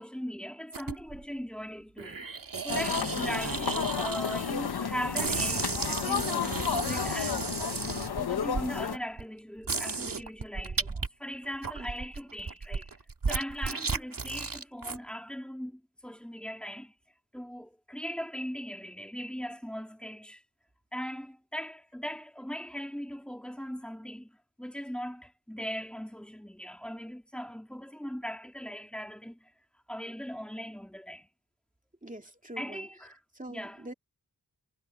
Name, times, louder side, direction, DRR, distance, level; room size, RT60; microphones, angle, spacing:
voice 1, 0.0-2.3 2.6-5.8 6.0-7.6 8.2-12.9 13.3-16.9 17.3-20.4 20.9-29.5 29.9-31.3 32.6-33.2 33.5-33.8, equal, 5° left, 2.4 m, -39 dB
sound 1, 0.7-1.2 2.0-4.7 5.1-8.7 9.2-9.3 9.6-11.1 11.4-15.0, right 4 dB, 60° right, 2.1 m, -34 dB
sound 2, 2.7-9.0, left 7 dB, 80° left, 1.0 m, -32 dB
voice 2, 32.0-33.9, right 1 dB, 20° right, 2.7 m, -45 dB
wide cardioid pair, 75°, 37 cm